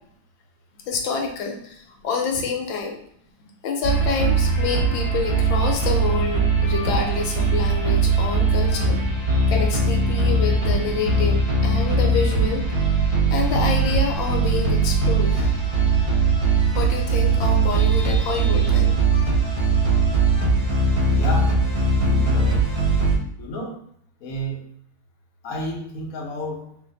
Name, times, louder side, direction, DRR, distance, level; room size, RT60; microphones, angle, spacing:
voice 1, 0.9-3.0 3.6-12.7 13.3-15.6 16.7-19.0, left 4 dB, 75° left, 1 dB, 1.3 m, -27 dB
sound 1, 3.8-23.1, right 3 dB, 35° right, 1.2 m, -20 dB
voice 2, 21.1-21.6 22.0-22.6 23.4-23.8 24.2-24.6 25.4-26.7, equal, 60° left, -1 dB, 1.0 m, -31 dB
3.1 x 2.5 x 3.9 m, 0.66 s
omnidirectional pair, 2.2 m